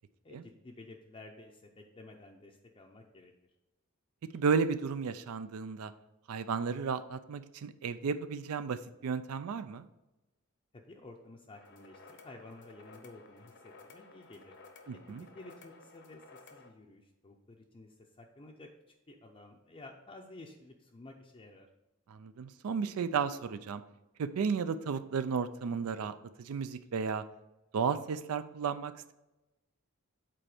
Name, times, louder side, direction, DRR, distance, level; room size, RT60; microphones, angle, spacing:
voice 1, 0.2-3.3 10.7-14.6 15.3-18.7 19.1-21.7, left 2 dB, 25° left, 0 dB, 0.5 m, -52 dB
voice 2, 4.3-5.9 6.3-9.9 14.9-15.3 22.1-23.8 24.2-26.1 26.4-27.2 27.7-29.1, right 5 dB, 75° right, 11 dB, 0.4 m, -33 dB
sound 1, 11.5-16.7, left 3 dB, 55° left, 0.8 m, -55 dB
7.6 x 4.3 x 4.9 m, 1.0 s
head